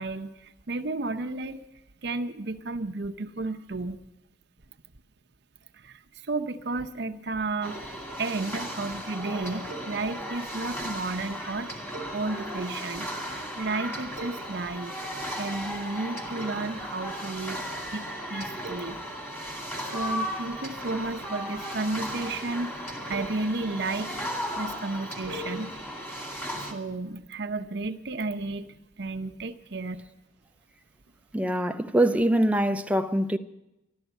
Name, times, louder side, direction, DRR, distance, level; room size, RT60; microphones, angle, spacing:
voice 1, 0.0-1.6 2.0-4.0 5.7-11.7 12.1-15.0 15.4-17.6 17.9-19.0 19.4-19.6 19.9-24.2 24.6-25.7 26.6-30.0, right 3 dB, 55° right, 0.7 m, -33 dB
sound 1, 7.6-26.7, equal, 10° left, 2.1 m, -35 dB
voice 2, 31.3-33.4, right 1 dB, 5° right, 0.5 m, -23 dB
13.5 x 12.0 x 8.2 m
head